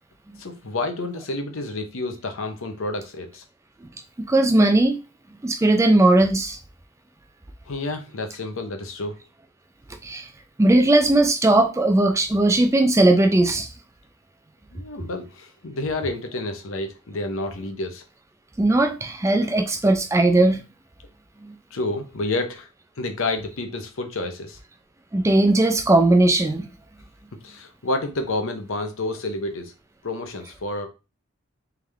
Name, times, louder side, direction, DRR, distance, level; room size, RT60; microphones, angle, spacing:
voice 1, 0.4-3.4 7.7-9.2 14.7-18.0 21.7-22.7 23.0-24.6 27.4-29.7 30.0-30.9, left 2 dB, 70° left, 0.7 m, -29 dB
voice 2, 4.2-5.0 5.4-6.6 10.0-10.3 10.6-13.7 18.6-20.6 21.4-21.5 25.1-26.7, right 2 dB, 15° right, 0.3 m, -18 dB
3.5 x 3.3 x 3.4 m
head